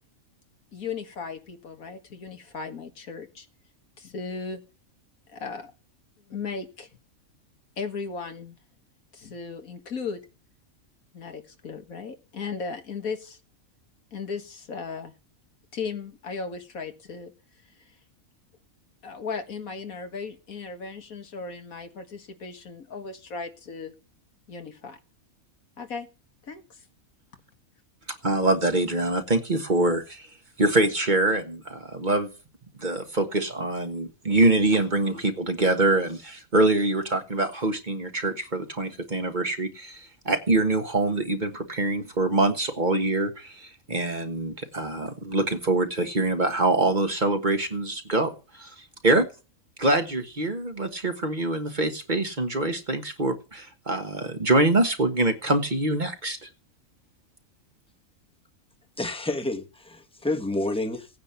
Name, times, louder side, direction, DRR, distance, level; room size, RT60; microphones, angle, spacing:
voice 1, 0.7-3.5 4.0-4.6 5.3-5.7 6.2-6.9 7.8-8.6 9.1-10.3 11.1-13.4 14.1-15.1 15.7-17.3 17.8-18.0 19.0-23.9 24.5-25.0 25.8-26.1 26.4-26.8, left 5 dB, 85° left, 6 dB, 2.1 m, -36 dB
voice 2, 28.2-30.3 30.6-32.3 32.8-49.3 49.8-56.5, right 2 dB, 35° right, 6 dB, 1.5 m, -24 dB
voice 3, 59.0-61.1, left 2 dB, 5° left, 4 dB, 1.3 m, -29 dB
16.5 x 9.5 x 5.7 m, 0.34 s
omnidirectional pair, 1.4 m